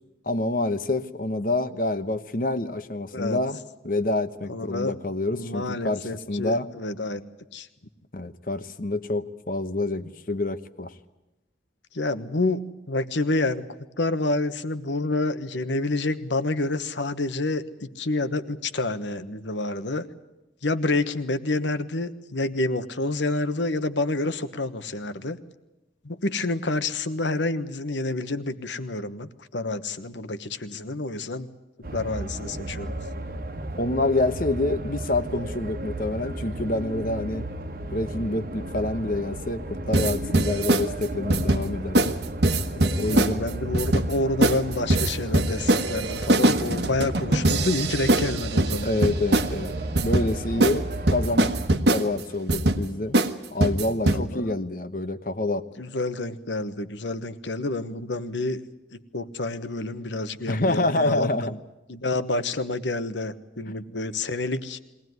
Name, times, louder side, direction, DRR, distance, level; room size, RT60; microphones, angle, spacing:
voice 1, 0.3-3.6 3.8-6.7 8.1-10.9 33.8-37.5 37.9-42.1 42.7-43.4 48.8-51.6 51.9-53.2 53.5-55.6 60.5-61.5, left 2 dB, 50° left, 11 dB, 1.0 m, -27 dB
voice 2, 4.5-5.0 5.3-7.2 7.5-7.7 11.9-13.6 14.0-20.0 20.6-25.4 26.0-31.5 31.9-32.9 43.1-48.9 54.1-54.5 55.8-58.6 58.9-61.3 61.9-64.8, left 2 dB, 80° left, 12 dB, 1.2 m, -28 dB
sound 1, 31.8-51.7, right 1 dB, 50° right, 1.3 m, -34 dB
sound 2, 39.9-40.8 41.3-41.6 42.0-42.1 42.4-43.3 43.7-44.1 44.4-44.6 44.9-49.5 50.0-50.3 50.6-50.8 51.1-52.0 52.5-52.8 53.1-53.3 53.6-54.2, right 2 dB, 65° right, 1.3 m, -22 dB
22.5 x 18.5 x 9.5 m, 1.0 s
head